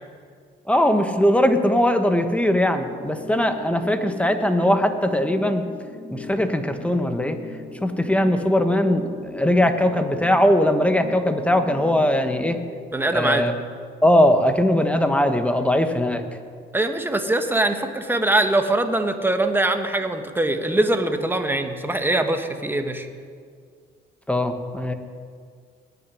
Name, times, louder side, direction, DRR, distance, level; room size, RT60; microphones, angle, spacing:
voice 1, 0.7-5.6 6.1-7.4 7.8-12.6 13.1-13.5 14.0-16.2 24.3-24.9, left 1 dB, 5° left, 7 dB, 1.4 m, -20 dB
sound 1, 2.6-12.6, left 2 dB, 60° left, 5.2 m, -38 dB
voice 2, 12.9-13.5 16.7-23.1, right 2 dB, 10° right, 6 dB, 1.5 m, -22 dB
19.5 x 6.8 x 9.9 m, 2.1 s
cardioid pair, 90°, 20 cm